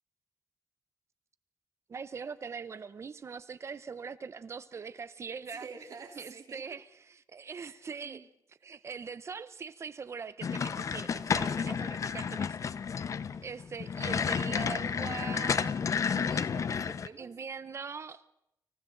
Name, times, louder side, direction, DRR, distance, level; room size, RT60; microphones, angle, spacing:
voice 1, 1.9-5.7 6.2-8.3 8.6-13.1 13.4-15.8 17.2-18.3, right 5 dB, 40° right, 0.8 m, -42 dB
voice 2, 5.5-6.8 7.6-8.3 11.3-11.7 16.0-17.3, right 5 dB, 55° right, 3.5 m, -48 dB
sound 1, 10.4-17.1, left 6 dB, 50° left, 0.7 m, -31 dB
29.5 x 26.5 x 3.9 m
wide cardioid pair, 155°, 7 cm